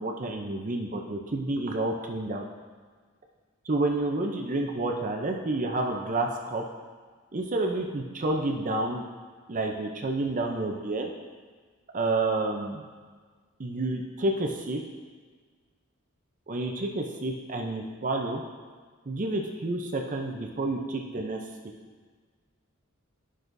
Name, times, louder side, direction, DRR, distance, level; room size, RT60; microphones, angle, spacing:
voice 1, 0.0-2.4 3.6-6.6 7.3-9.0 9.5-11.1 11.9-12.8 13.6-14.8 16.5-18.4 19.1-21.4, right 2 dB, 40° right, 2 dB, 0.6 m, -29 dB
11.0 x 6.2 x 2.6 m, 1.5 s
head